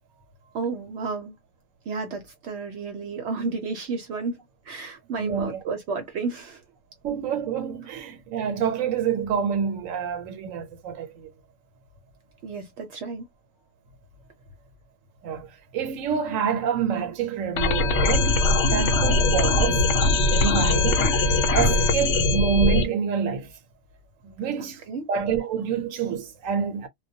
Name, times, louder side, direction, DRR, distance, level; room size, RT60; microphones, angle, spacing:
voice 1, 0.5-1.4 1.9-4.4 4.7-6.6 12.4-13.3 24.6-25.0, right 4 dB, 65° right, 0.8 m, -32 dB
voice 2, 5.2-5.6 7.0-11.3 15.2-15.5 15.7-19.9 20.3-21.2 21.5-23.5 24.2-24.8 25.1-26.9, right 7 dB, 85° right, 1.0 m, -27 dB
sound 1, 17.6-22.8, left 2 dB, 65° left, 0.9 m, -21 dB
2.2 x 2.1 x 2.6 m
omnidirectional pair, 1.3 m